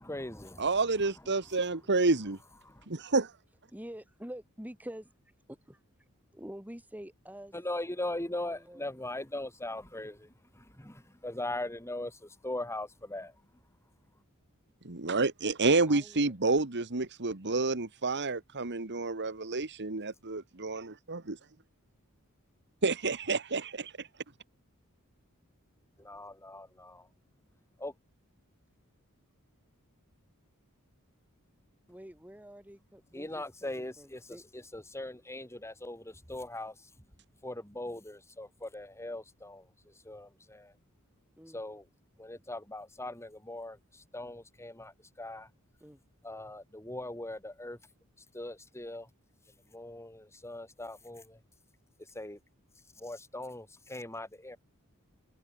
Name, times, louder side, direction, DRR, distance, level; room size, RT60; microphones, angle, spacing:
voice 1, 0.0-0.7 2.6-2.9 7.5-13.4 26.0-27.1 27.8-27.9 33.1-37.0 37.4-40.8 41.5-41.9 42.2-45.5 46.2-47.8 48.2-49.1 49.7-51.4 52.0-52.4 53.0-54.6, left 1 dB, 15° left, 6.5 m, -40 dB
voice 2, 0.6-2.4 2.9-3.3 14.8-21.4 22.8-24.1, right 3 dB, 55° right, 1.8 m, -29 dB
voice 3, 3.7-5.1 5.5-5.8 6.3-7.5 8.3-8.9 15.9-16.3 31.9-34.4 41.4-41.6 45.8-46.0, equal, 10° right, 5.8 m, -47 dB
head